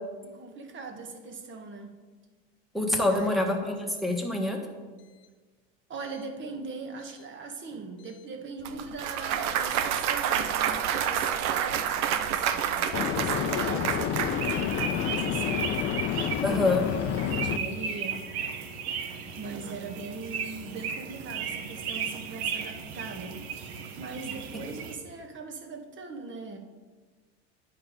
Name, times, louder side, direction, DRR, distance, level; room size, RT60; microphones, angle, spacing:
voice 1, 0.2-1.9 2.9-3.7 5.9-15.9 17.3-18.2 19.4-23.4 24.0-26.6, right 4 dB, 40° right, 4 dB, 1.3 m, -40 dB
voice 2, 2.7-4.6 16.4-16.8, left 2 dB, ahead, 2 dB, 1.4 m, -26 dB
sound 1, 8.1-8.2 12.9-17.6, left 10 dB, 40° left, 0.5 m, -29 dB
Clapping / Cheering / Applause, 8.7-14.9, right 9 dB, 60° right, 0.7 m, -28 dB
sound 2, 14.3-24.9, right 6 dB, 85° right, 1.0 m, -35 dB
9.5 x 4.9 x 5.0 m, 1.4 s
supercardioid pair, 105°, 31 cm